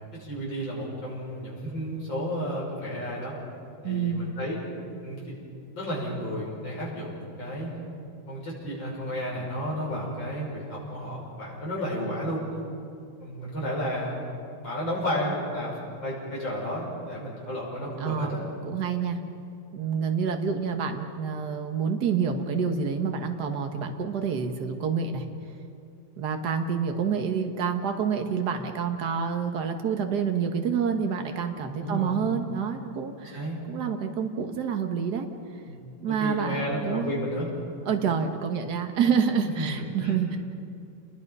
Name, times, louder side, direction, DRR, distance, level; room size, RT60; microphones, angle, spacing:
voice 1, 0.1-3.3 3.8-4.6 5.0-5.4 5.7-7.7 8.3-12.4 13.2-14.2 14.6-18.4 31.8-32.2 33.2-33.6 35.7-35.8 36.1-37.5 39.6-39.7 40.0-40.2, equal, 70° left, -5 dB, 7.0 m, -32 dB
voice 2, 3.8-4.3 18.0-18.4 18.7-19.2 19.7-25.3 26.2-33.4 33.7-35.3 36.0-37.1 37.9-40.4, right 6 dB, 55° right, 5 dB, 1.9 m, -28 dB
29.5 x 21.5 x 5.5 m, 2.4 s
omnidirectional pair, 2.1 m